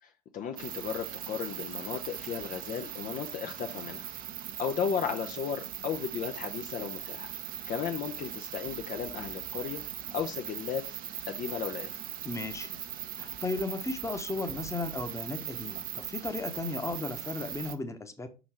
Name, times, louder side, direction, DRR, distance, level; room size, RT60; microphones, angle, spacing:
voice 1, 0.0-4.1 4.6-7.3 7.7-9.8 10.1-10.8 11.3-12.0, left 7 dB, 45° left, 0.7 m, -35 dB
sound 1, 0.6-17.8, right 10 dB, 45° right, 0.7 m, -40 dB
voice 2, 12.2-12.7 13.2-18.3, left 3 dB, 15° left, 1.1 m, -35 dB
6.1 x 4.0 x 4.5 m
figure-of-eight pair, 60°, 20 cm